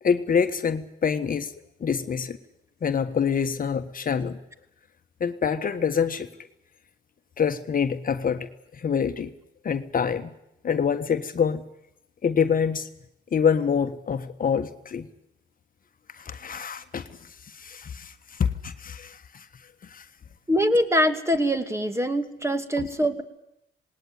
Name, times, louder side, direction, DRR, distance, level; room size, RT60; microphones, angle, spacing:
voice 1, 0.0-1.5 1.8-2.4 2.8-4.4 5.2-6.3 7.4-9.3 9.6-10.3 10.6-11.6 12.2-12.9 13.3-15.1 16.1-19.5 19.8-20.1 22.8-22.9, left 7 dB, 45° left, 8 dB, 1.5 m, -26 dB
voice 2, 20.5-23.2, equal, 15° right, 8 dB, 2.5 m, -23 dB
19.5 x 18.5 x 9.6 m, 0.83 s
cardioid pair, 75°, 20 cm